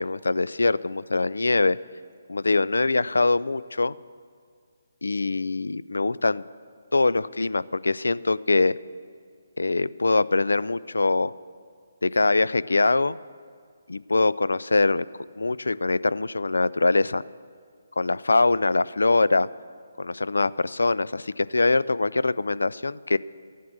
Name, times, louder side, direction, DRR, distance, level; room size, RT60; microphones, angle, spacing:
voice 1, 0.0-1.8 2.3-3.9 5.0-6.4 6.9-8.8 9.6-11.3 12.0-13.2 13.9-15.1 15.4-17.2 18.0-19.5 20.0-23.2, left 3 dB, 85° left, 19 dB, 0.3 m, -23 dB
13.0 x 9.3 x 6.5 m, 2.1 s
figure-of-eight pair, 150°, 0 cm